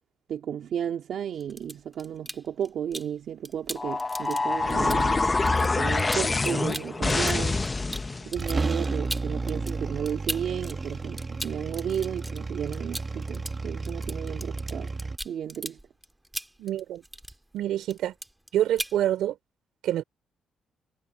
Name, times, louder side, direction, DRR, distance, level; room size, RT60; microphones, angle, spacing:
voice 1, 0.3-7.6 8.2-14.9 15.2-15.8, right 9 dB, 65° right, 2.6 m, -33 dB
sound 1, 1.3-3.1 3.4-10.7 11.0-17.6 17.8-18.5 18.8-19.0, right 1 dB, 5° right, 2.2 m, -39 dB
sound 2, 3.8-8.3, left 3 dB, 20° left, 0.9 m, -26 dB
sound 3, 7.9-8.0 8.4-15.2, right 3 dB, 25° right, 1.1 m, -32 dB
voice 2, 16.6-17.0 17.5-18.1 18.5-19.4 19.8-20.0, right 12 dB, 80° right, 5.0 m, -26 dB
cardioid pair, 115°, 0 cm